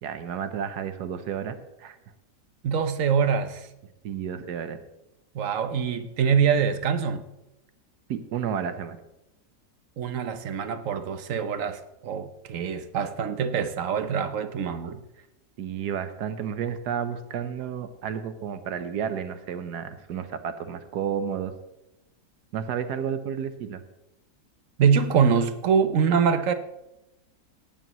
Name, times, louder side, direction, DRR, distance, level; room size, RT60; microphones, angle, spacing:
voice 1, 0.0-2.0 4.0-4.8 8.1-9.0 15.6-21.5 22.5-23.8, right 8 dB, 80° right, 10 dB, 1.4 m, -31 dB
voice 2, 2.6-3.7 5.3-7.3 10.0-15.0 24.8-26.5, right 6 dB, 60° right, 10 dB, 1.0 m, -24 dB
18.0 x 9.1 x 3.0 m, 0.91 s
omnidirectional pair, 1.7 m